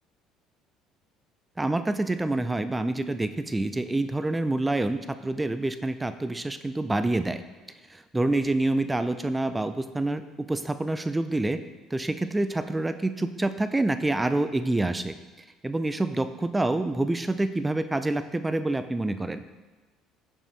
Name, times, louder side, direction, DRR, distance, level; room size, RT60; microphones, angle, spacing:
voice 1, 1.6-7.4 7.9-11.6 11.9-15.1 15.6-19.4, right 2 dB, 15° right, 11 dB, 0.4 m, -27 dB
6.5 x 5.9 x 3.3 m, 1.2 s
hypercardioid pair, 60°, 0 cm